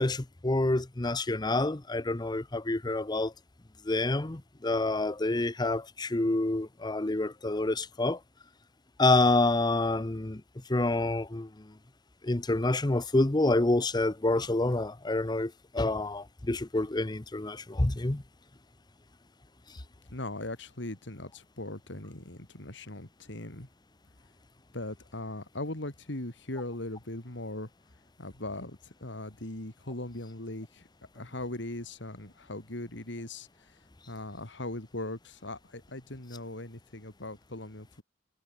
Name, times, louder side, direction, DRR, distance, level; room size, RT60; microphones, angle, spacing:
voice 1, 0.0-3.3 3.8-8.2 9.0-10.4 10.7-11.7 12.2-18.2, left 2 dB, 20° left, 0.8 m, -28 dB
voice 2, 20.1-23.7 24.7-27.7 28.2-30.9 31.1-33.8 34.1-38.0, left 1 dB, 65° left, 3.0 m, -39 dB
head